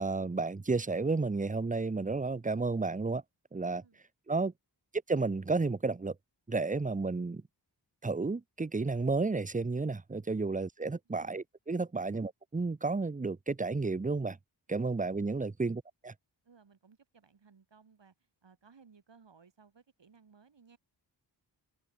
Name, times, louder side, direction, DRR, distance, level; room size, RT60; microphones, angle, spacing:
voice 1, 0.0-3.2 3.5-3.8 4.3-4.5 5.1-6.1 6.5-7.4 8.0-14.4 14.7-16.1, right 3 dB, 20° right, 0.7 m, -32 dB
voice 2, 16.4-20.8, right 5 dB, 75° right, 7.7 m, -61 dB
open air
wide cardioid pair, 100°, 44 cm